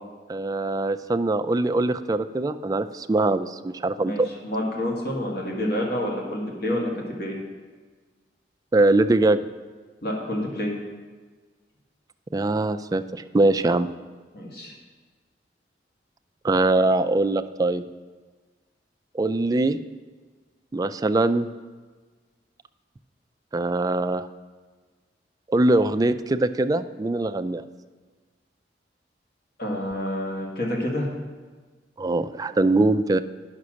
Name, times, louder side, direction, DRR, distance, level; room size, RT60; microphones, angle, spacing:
voice 1, 0.3-4.3 8.7-9.4 12.3-13.9 16.4-17.8 19.1-19.8 20.7-21.5 23.5-24.2 25.5-27.6 32.0-33.2, right 2 dB, 20° right, 9 dB, 0.3 m, -22 dB
voice 2, 4.0-6.9 7.2-7.4 10.0-10.7 14.3-14.7 29.6-31.1, left 1 dB, 60° left, -1 dB, 1.9 m, -28 dB
9.7 x 5.9 x 6.2 m, 1.4 s
head